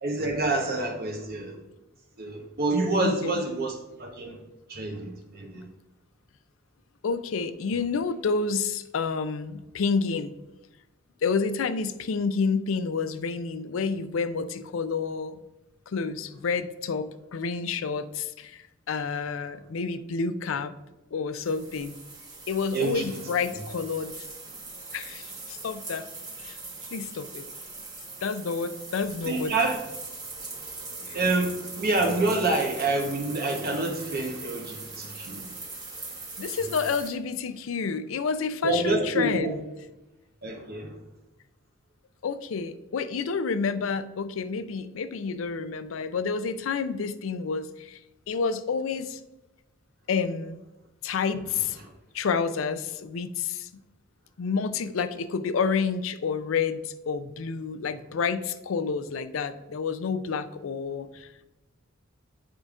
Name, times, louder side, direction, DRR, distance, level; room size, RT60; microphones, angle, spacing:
voice 1, 0.0-1.6 2.2-4.4 4.7-5.6 22.7-23.1 29.3-29.8 31.1-35.5 38.6-39.5 40.4-40.9 51.8-51.9, right 2 dB, 50° right, 1 dB, 1.0 m, -27 dB
voice 2, 3.0-3.4 7.0-10.3 11.2-15.4 15.9-20.7 21.1-21.9 22.5-24.1 24.9-26.1 26.4-26.6 26.9-27.4 28.2-29.5 31.1-31.2 36.4-39.6 42.2-48.0 48.3-49.2 50.1-50.6 51.0-51.8 52.1-53.7 54.4-61.4, left 5 dB, 75° left, 12 dB, 0.4 m, -29 dB
sound 1, 21.4-37.1, right 3 dB, 20° right, 1.3 m, -41 dB
8.6 x 5.1 x 2.4 m, 1.0 s
head